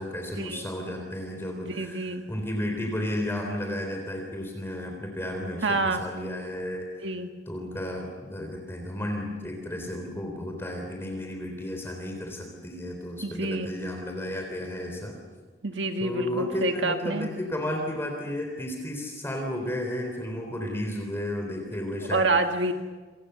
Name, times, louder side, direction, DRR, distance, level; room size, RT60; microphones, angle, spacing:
voice 1, 0.0-6.8 7.5-15.1 16.0-22.2, left 1 dB, 15° left, 2 dB, 3.8 m, -33 dB
voice 2, 1.7-2.2 5.6-6.0 7.0-7.3 13.2-13.7 15.6-17.3 22.1-22.7, right 3 dB, 70° right, 5 dB, 1.6 m, -27 dB
28.5 x 26.5 x 6.9 m, 1.4 s
head